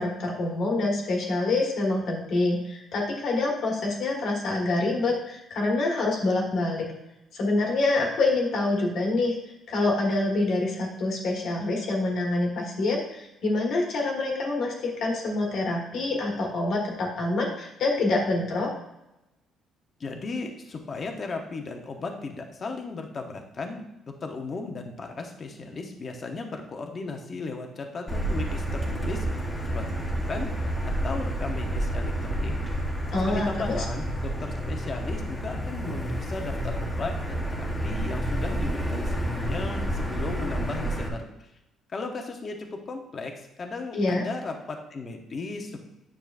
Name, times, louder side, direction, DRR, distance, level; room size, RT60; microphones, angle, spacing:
voice 1, 0.0-6.9 7.3-9.4 9.7-18.7 33.1-33.8 43.9-44.3, left 2 dB, 50° left, -1 dB, 1.5 m, -26 dB
voice 2, 20.0-23.8 24.2-32.5 33.2-41.5 41.9-45.8, left 3 dB, 25° left, 3 dB, 0.9 m, -36 dB
Motor vehicle (road), 28.1-41.1, right 1 dB, 5° left, 1.0 m, -29 dB
9.3 x 6.2 x 2.5 m, 0.92 s
cardioid pair, 180°, 0 cm